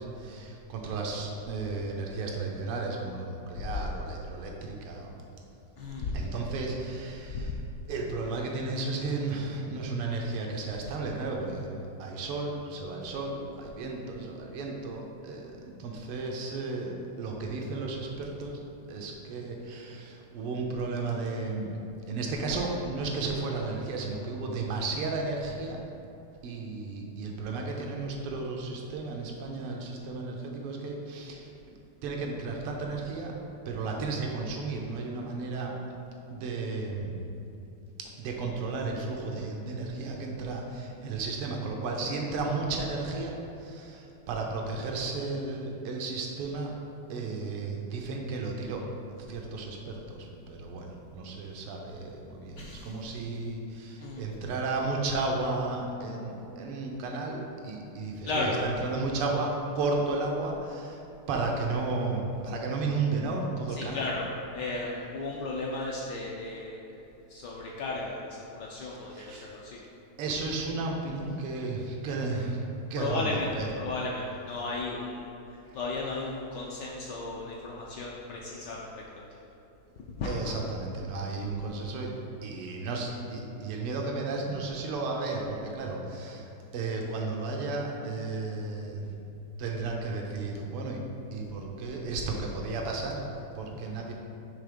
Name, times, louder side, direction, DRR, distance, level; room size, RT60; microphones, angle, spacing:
voice 1, 0.0-5.2 6.1-7.6 7.9-18.6 18.9-21.7 22.1-25.8 26.4-31.5 32.0-33.3 33.7-35.8 36.3-37.2 38.0-46.8 47.1-48.8 49.1-61.0 61.3-64.0 68.8-69.5 70.2-72.6 72.9-73.7 80.2-82.1 82.4-89.1 89.6-94.1, right 3 dB, 85° right, 0 dB, 1.7 m, -33 dB
voice 2, 5.8-6.2 7.3-7.5 52.6-53.0 54.0-54.3 58.2-58.6 63.7-64.3 64.5-69.8 73.0-75.3 75.7-79.3 80.2-80.5, left 3 dB, 75° left, -3 dB, 1.0 m, -35 dB
6.1 x 3.4 x 5.1 m, 2.8 s
omnidirectional pair, 2.4 m